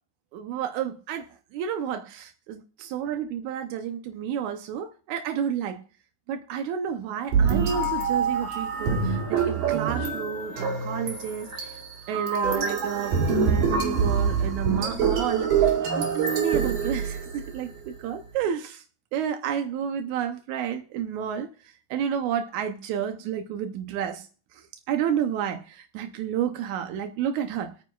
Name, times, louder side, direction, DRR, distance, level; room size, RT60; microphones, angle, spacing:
voice 1, 0.3-5.8 6.3-11.8 12.1-18.8 19.1-24.3 24.5-27.7, right 8 dB, 85° right, 6 dB, 1.6 m, -31 dB
sound 1, 7.3-17.6, right 6 dB, 65° right, 3.8 m, -25 dB
22.0 x 9.0 x 2.3 m, 0.38 s
omnidirectional pair, 4.4 m